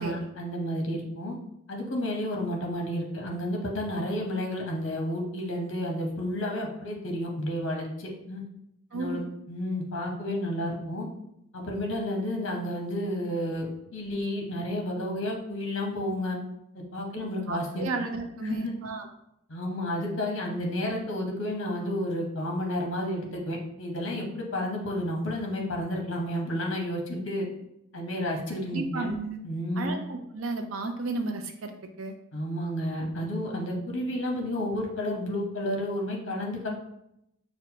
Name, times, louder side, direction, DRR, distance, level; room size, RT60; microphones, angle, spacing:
voice 1, 0.0-1.3 1.7-8.4 8.9-9.2 9.5-11.1 11.5-16.4 16.7-17.9 18.4-18.7 19.5-27.4 27.9-29.1 29.4-29.9 32.3-36.7, left 1 dB, 60° left, 0 dB, 0.9 m, -31 dB
voice 2, 8.9-9.2 17.5-19.1 28.7-29.4 29.8-32.1, right 3 dB, 75° right, 5 dB, 0.5 m, -33 dB
6.2 x 2.1 x 2.8 m, 0.81 s
head